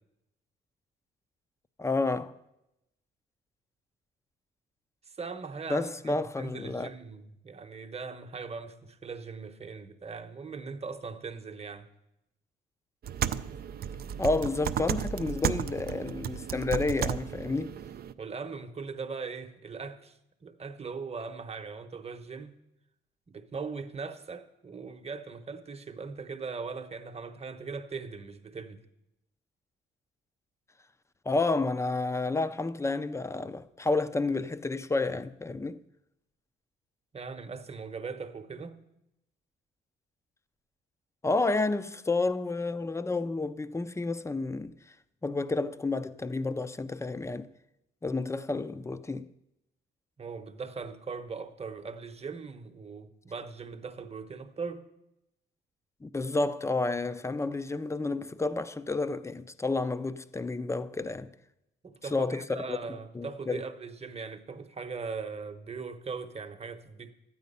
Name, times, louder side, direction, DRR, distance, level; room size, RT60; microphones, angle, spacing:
voice 1, 1.8-2.3 5.7-6.9 14.2-17.8 31.3-35.8 41.2-44.7 45.2-47.5 48.0-49.3 56.0-61.3 62.1-62.8 63.1-63.6, left 3 dB, 15° left, 0.5 m, -30 dB
voice 2, 5.2-11.9 18.2-22.5 23.3-28.8 37.1-38.8 50.2-54.8 61.8-67.1, right 4 dB, 30° right, 1.0 m, -40 dB
sound 1, 13.0-18.1, right 9 dB, 50° right, 0.5 m, -33 dB
12.0 x 9.3 x 5.5 m
cardioid pair, 90°, 20 cm